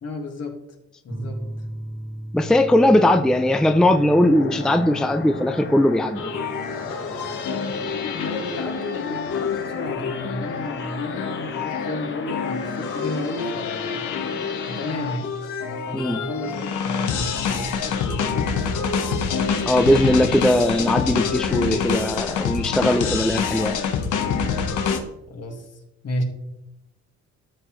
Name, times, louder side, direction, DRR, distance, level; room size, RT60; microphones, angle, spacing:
voice 1, 0.0-0.6 1.0-1.4 7.8-14.2 14.7-15.4 15.6-18.5 25.3-25.7 26.0-26.2, left 1 dB, 55° left, 3 dB, 2.0 m, -32 dB
sound 1, 1.1-8.7, right 1 dB, 15° right, 1.1 m, -38 dB
voice 2, 2.3-6.3 15.9-16.2 19.7-23.8, left 1 dB, ahead, 8 dB, 0.5 m, -19 dB
sound 2, 2.4-15.2, left 4 dB, 40° left, 1.1 m, -36 dB
sound 3, 6.2-25.0, left 6 dB, 80° left, 1.2 m, -27 dB
13.0 x 5.9 x 3.2 m, 0.86 s
cardioid pair, 90°, 30 cm